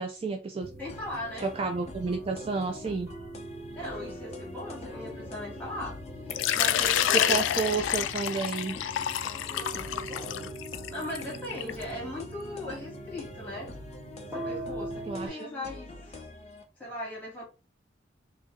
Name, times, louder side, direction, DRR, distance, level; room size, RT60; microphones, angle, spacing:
voice 1, 0.0-0.7 1.4-3.1 7.1-8.8 15.1-15.5, right 4 dB, 30° right, 0.3 m, -31 dB
sound 1, 0.6-15.3, right 1 dB, 10° right, 1.5 m, -42 dB
voice 2, 0.8-1.5 3.7-6.0 6.3-7.6 9.4-10.5 10.9-13.7 14.3-16.2 16.8-17.4, left 1 dB, 10° left, 1.6 m, -39 dB
sound 2, 0.9-16.6, left 2 dB, 35° left, 0.6 m, -47 dB
Water / Liquid, 6.3-11.8, left 11 dB, 80° left, 0.3 m, -28 dB
2.8 x 2.6 x 3.6 m
head